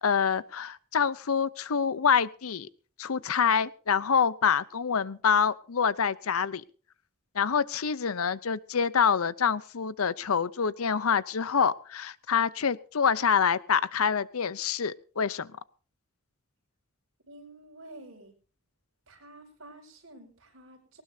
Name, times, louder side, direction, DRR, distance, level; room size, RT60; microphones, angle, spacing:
voice 1, 0.0-2.7 3.0-6.6 7.3-15.5, left 6 dB, 85° left, 18 dB, 0.7 m, -26 dB
voice 2, 17.3-18.3 19.1-21.0, right 2 dB, 65° right, 2 dB, 5.2 m, -50 dB
19.5 x 19.0 x 2.8 m, 0.38 s
head